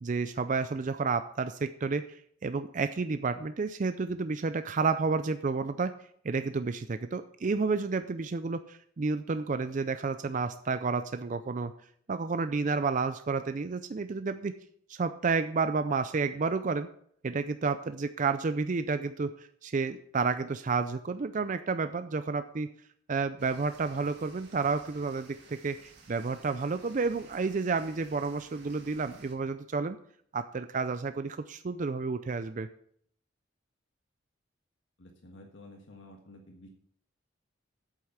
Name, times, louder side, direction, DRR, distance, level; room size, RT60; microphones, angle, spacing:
voice 1, 0.0-5.9 6.2-11.7 12.1-14.5 14.9-16.9 17.2-22.7 23.1-30.0 30.3-32.7, right 4 dB, 40° right, 10 dB, 0.4 m, -31 dB
sound 1, 23.4-29.3, right 3 dB, 60° right, 2.2 m, -56 dB
voice 2, 35.0-36.7, left 1 dB, 70° left, 1 dB, 1.5 m, -51 dB
8.5 x 7.9 x 5.7 m, 0.64 s
head